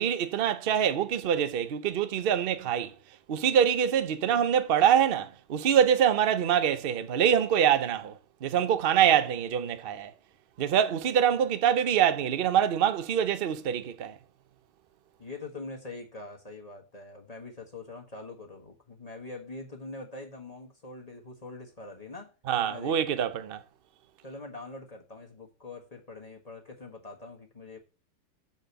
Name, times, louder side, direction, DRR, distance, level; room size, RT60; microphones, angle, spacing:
voice 1, 0.0-2.9 3.3-10.1 10.6-14.2 22.5-23.6, right 9 dB, 80° right, 0.5 m, -25 dB
voice 2, 15.2-22.3 22.7-22.9 24.2-27.8, left 3 dB, 20° left, 1.4 m, -43 dB
7.3 x 5.4 x 6.8 m
omnidirectional pair, 2.1 m